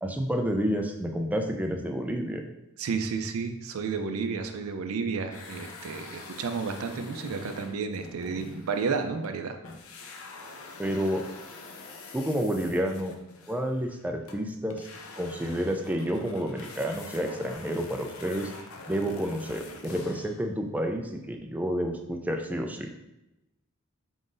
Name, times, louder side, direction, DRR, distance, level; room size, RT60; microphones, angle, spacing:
voice 1, 0.0-2.4 10.8-11.3 12.1-13.1 13.5-14.9 15.2-18.5 18.9-22.9, equal, 5° right, 3 dB, 0.3 m, -30 dB
voice 2, 2.8-9.6, right 5 dB, 75° right, 7 dB, 0.4 m, -31 dB
sound 1, 5.3-9.4 9.6-20.4, left 3 dB, 75° left, 0.5 m, -45 dB
3.8 x 3.7 x 2.5 m, 0.92 s
head